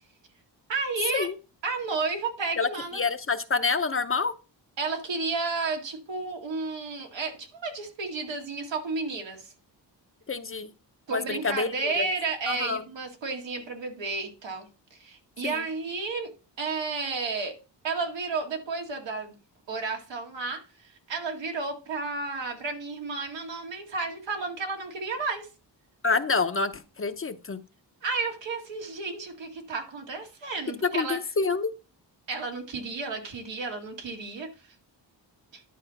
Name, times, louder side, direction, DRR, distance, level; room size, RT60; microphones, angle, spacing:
voice 1, 0.7-1.3 1.6-3.0 4.8-9.5 11.1-16.3 16.6-17.6 17.8-19.3 19.7-25.5 28.0-31.2 32.3-34.7 35.5-35.6, right 4 dB, 90° right, 2.2 m, -32 dB
voice 2, 2.6-4.3 10.3-10.7 11.1-12.1 12.5-12.8 15.4-15.6 26.0-27.6 30.9-31.7, left 4 dB, 30° left, 0.7 m, -27 dB
11.0 x 4.4 x 5.7 m
wide cardioid pair, 130°, 43 cm